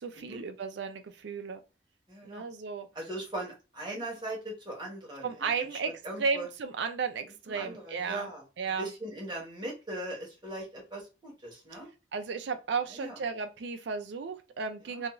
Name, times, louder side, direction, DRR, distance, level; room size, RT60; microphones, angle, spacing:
voice 1, 0.0-1.6 2.2-2.9 5.2-5.9 6.2-8.3 8.6-8.9 12.1-15.1, right 5 dB, 60° right, 0.4 m, -34 dB
voice 2, 2.1-2.5 2.9-5.8 6.0-6.5 7.5-8.4 8.8-11.9 12.9-13.2 14.9-15.0, right 1 dB, 25° right, 1.0 m, -39 dB
2.4 x 2.3 x 2.9 m
head